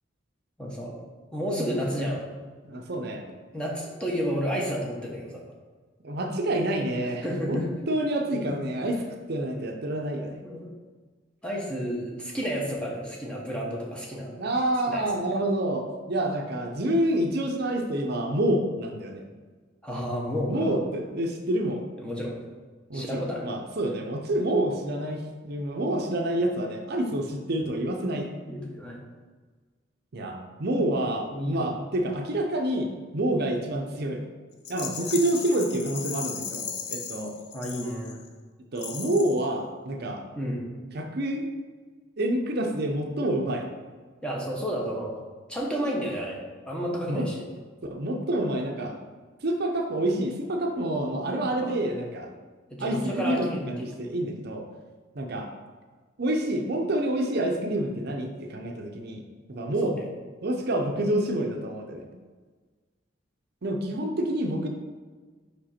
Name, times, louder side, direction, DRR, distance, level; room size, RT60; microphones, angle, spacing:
voice 1, 0.6-0.9 1.3-2.3 3.5-5.4 7.2-7.7 8.4-8.6 10.4-10.7 11.4-14.3 14.9-15.0 19.8-20.7 22.0-22.4 22.9-23.5 28.4-29.0 31.3-31.7 35.0-35.2 37.5-38.2 40.4-40.6 44.2-45.1 45.5-47.4 51.6-51.8 52.7-53.9 59.8-60.0, equal, 5° left, -3 dB, 1.0 m, -31 dB
voice 2, 1.6-1.9 2.6-3.3 6.0-9.0 9.3-10.4 14.4-19.2 20.5-21.8 22.9-28.3 30.1-34.2 34.7-37.3 38.7-40.2 40.9-41.5 42.2-43.7 46.8-47.3 47.9-49.0 49.4-52.3 52.8-54.6 55.1-55.5 56.2-59.2 59.5-59.9 60.4-62.1 63.6-64.7, right 1 dB, 55° right, 2 dB, 0.6 m, -28 dB
Rattle, 34.6-38.3 38.8-39.5, left 7 dB, 55° left, 0.6 m, -36 dB
5.1 x 5.0 x 4.3 m, 1.4 s
head